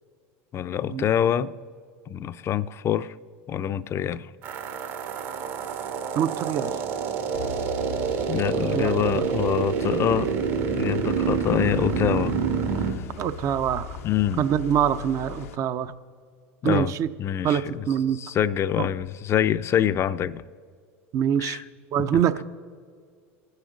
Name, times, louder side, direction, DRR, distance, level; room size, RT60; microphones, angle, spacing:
voice 1, 0.5-1.5 2.1-3.1 3.5-4.3 8.3-10.3 10.8-12.4 12.8-13.0 14.0-14.4 16.6-16.9 17.2-17.9 18.1-20.4 21.4-21.6, left 10 dB, 35° left, 0.5 m, -25 dB
sound 1, 4.4-12.9, right 6 dB, 70° right, 1.6 m, -27 dB
voice 2, 6.1-6.7 8.7-9.3 13.2-14.0 14.4-15.9 16.6-17.1 17.4-18.2 18.8-18.9 21.1-21.6 21.9-22.4, right 9 dB, 45° right, 0.6 m, -24 dB
sound 2, 7.3-15.6, left 7 dB, 85° left, 0.8 m, -39 dB
24.5 x 9.7 x 4.0 m
hypercardioid pair, 95°, 7 cm